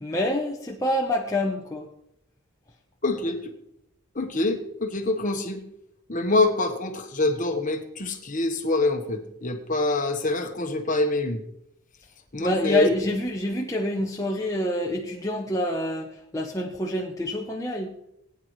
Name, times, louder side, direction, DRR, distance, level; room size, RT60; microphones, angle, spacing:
voice 1, 0.0-1.9 12.4-18.0, left 1 dB, 15° left, -1 dB, 0.8 m, -27 dB
voice 2, 3.0-3.5 4.1-5.6 6.1-11.4 12.3-12.9, left 2 dB, 35° left, 5 dB, 1.2 m, -25 dB
19.0 x 9.5 x 3.2 m, 0.79 s
head